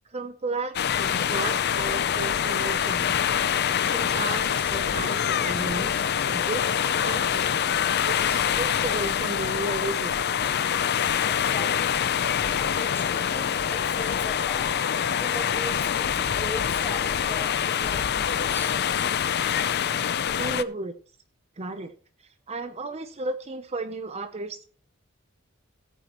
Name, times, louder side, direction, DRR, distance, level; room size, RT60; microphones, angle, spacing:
voice 1, 0.1-3.2 3.9-7.4 8.0-10.1 20.4-20.9 21.6-21.9 22.2-24.6, right 3 dB, 30° right, 8 dB, 0.7 m, -34 dB
sound 1, 0.7-20.6, left 8 dB, 50° left, 0.5 m, -25 dB
voice 2, 11.2-12.0 12.4-14.7 15.1-18.8, left 1 dB, 10° left, 5 dB, 1.6 m, -40 dB
17.0 x 8.3 x 3.0 m, 0.40 s
head